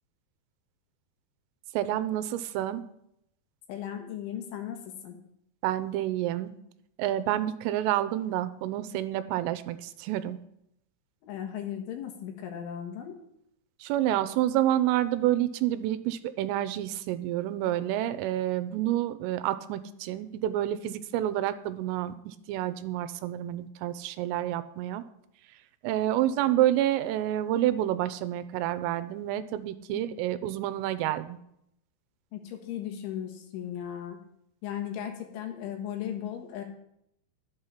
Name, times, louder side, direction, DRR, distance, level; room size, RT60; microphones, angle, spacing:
voice 1, 1.7-2.9 5.6-6.5 7.0-10.4 13.8-25.0 25.8-31.4, right 13 dB, 85° right, 13 dB, 3.2 m, -28 dB
voice 2, 3.7-5.2 11.2-13.1 29.9-30.2 32.3-34.2 34.6-36.6, left 10 dB, 75° left, 3 dB, 3.8 m, -37 dB
12.0 x 8.2 x 5.7 m, 0.77 s
omnidirectional pair, 5.8 m